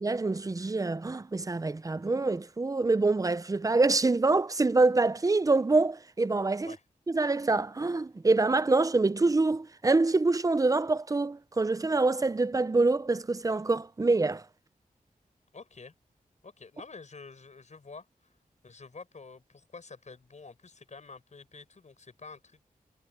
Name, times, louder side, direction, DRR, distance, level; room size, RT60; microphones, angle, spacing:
voice 1, 0.0-6.8 7.1-14.4, right 3 dB, 25° right, 0.5 m, -25 dB
voice 2, 15.5-15.9 16.4-18.4 18.6-22.6, left 4 dB, 55° left, 6.2 m, -48 dB
wide cardioid pair, 95°, 15 cm